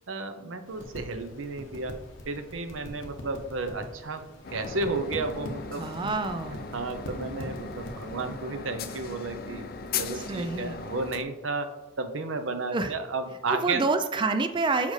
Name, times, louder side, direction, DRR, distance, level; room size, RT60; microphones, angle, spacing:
voice 1, 0.1-2.0 2.3-4.2 4.5-6.1 6.5-9.6 10.0-13.8, right 3 dB, 80° right, 7 dB, 0.7 m, -33 dB
sound 1, 0.7-8.4, equal, 70° left, 1.0 m, -43 dB
sound 2, 4.4-11.2, left 5 dB, 50° left, 0.5 m, -38 dB
voice 2, 5.8-6.6 10.1-10.7 12.7-12.9 13.5-14.9, right 3 dB, 25° right, 8 dB, 0.4 m, -28 dB
7.2 x 5.0 x 3.2 m, 1.0 s
head